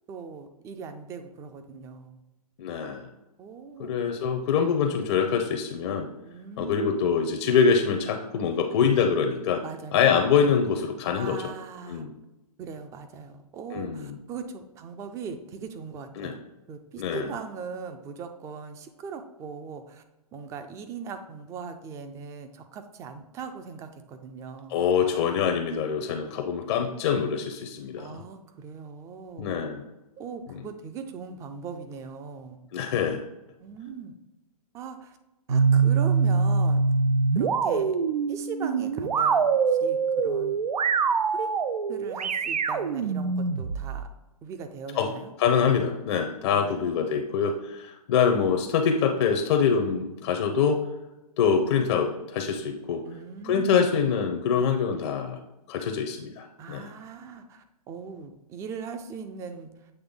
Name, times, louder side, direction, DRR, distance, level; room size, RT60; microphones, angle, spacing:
voice 1, 0.1-2.2 3.4-4.0 4.6-4.8 6.2-7.1 9.6-10.0 11.1-12.1 12.6-16.4 16.7-20.0 20.3-24.8 28.0-29.7 30.2-32.6 33.6-34.1 34.7-35.2 35.5-36.8 37.3-38.0 38.3-40.6 41.3-41.6 41.9-44.1 44.4-45.3 46.5-47.2 53.0-54.0 56.6-59.9, right 5 dB, 15° right, 8 dB, 0.4 m, -40 dB
voice 2, 2.6-3.1 3.8-6.1 6.6-9.6 9.9-11.5 11.9-12.1 13.7-14.1 16.2-16.3 17.0-17.2 24.7-28.2 29.4-29.8 30.5-30.6 32.7-33.2 45.0-45.1 45.4-50.8 51.4-53.0 53.4-55.4 55.7-56.9, left 6 dB, 45° left, 4 dB, 0.6 m, -25 dB
sound 1, 35.5-44.1, right 5 dB, 85° right, 0.5 m, -24 dB
8.0 x 3.2 x 3.6 m, 0.99 s
hypercardioid pair, 130°, 20 cm